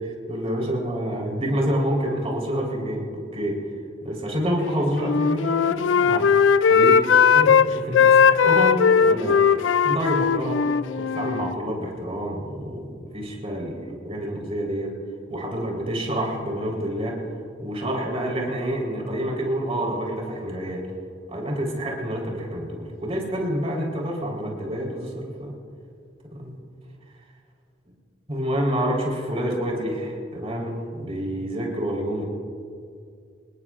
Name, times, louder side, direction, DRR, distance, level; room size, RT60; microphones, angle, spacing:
voice 1, 0.0-3.5 4.0-6.3 6.7-7.0 7.3-9.4 9.8-10.6 11.1-14.9 15.3-17.1 17.6-20.8 21.3-25.5 26.4-26.5 28.3-32.2, equal, 35° right, -2 dB, 4.0 m, -28 dB
Wind instrument woodwind instrument, 4.9-7.7 7.9-11.6, left 6 dB, 85° left, 0.4 m, -18 dB
26.0 x 20.5 x 2.5 m, 2.3 s
head